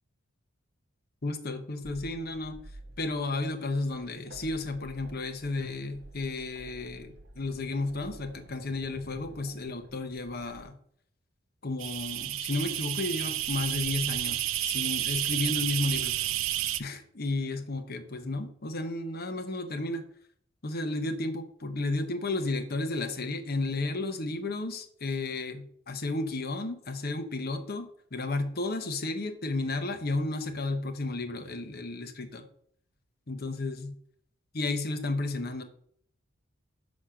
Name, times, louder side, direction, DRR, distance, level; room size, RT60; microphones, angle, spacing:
voice 1, 1.2-2.6 3.0-10.8 11.6-16.2 16.8-20.0 20.6-32.5 33.3-34.0 34.5-35.6, left 2 dB, 50° left, 7 dB, 1.0 m, -33 dB
sound 1, 1.8-10.6, right 1 dB, 55° right, 0.9 m, -51 dB
sound 2, 11.8-16.8, right 13 dB, 80° right, 0.4 m, -31 dB
6.3 x 4.2 x 5.8 m, 0.62 s
head